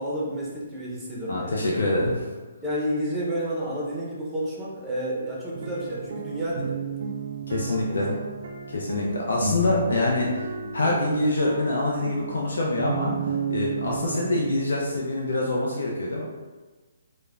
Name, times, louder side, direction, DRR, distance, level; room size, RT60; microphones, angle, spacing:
voice 1, 0.0-1.6 2.6-6.8 7.7-8.2, equal, 5° right, -6 dB, 0.6 m, -30 dB
voice 2, 1.3-2.2 7.5-8.1 8.7-16.2, left 2 dB, 75° left, -3 dB, 0.4 m, -25 dB
sound 1, 5.5-14.9, right 4 dB, 60° right, 0.3 m, -33 dB
3.1 x 2.1 x 2.4 m, 1.3 s
hypercardioid pair, 155°, 0 cm